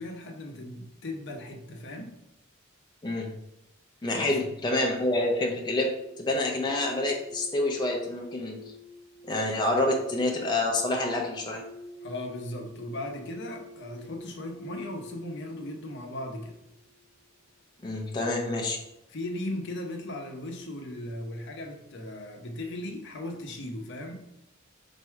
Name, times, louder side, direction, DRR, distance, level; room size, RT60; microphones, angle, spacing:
voice 1, 0.0-2.1 4.1-4.4 12.0-16.5 19.1-24.2, left 1 dB, 60° left, 3 dB, 0.8 m, -37 dB
voice 2, 4.0-8.6 9.2-11.6 17.8-18.8, left 2 dB, 20° left, 0 dB, 0.5 m, -27 dB
sound 1, 6.0-17.0, left 2 dB, 20° right, 1.7 m, -47 dB
4.3 x 2.7 x 4.6 m, 0.86 s
head